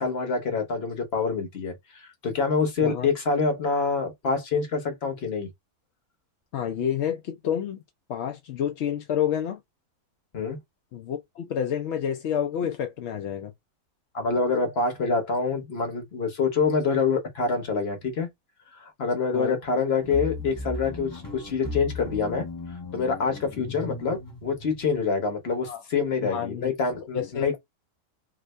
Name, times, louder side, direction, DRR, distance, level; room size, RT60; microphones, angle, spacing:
voice 1, 0.0-5.5 10.3-10.6 14.1-18.3 18.7-22.5 22.9-27.6, left 4 dB, 45° left, 1.2 m, -26 dB
voice 2, 6.5-7.8 8.1-9.6 10.9-13.5 19.3-19.6 23.6-23.7 25.6-25.8 26.2-26.7 27.1-27.6, left 9 dB, 65° left, 0.7 m, -29 dB
sound 1, 20.0-25.0, left 2 dB, 20° left, 0.7 m, -37 dB
2.8 x 2.6 x 3.2 m
omnidirectional pair, 1.5 m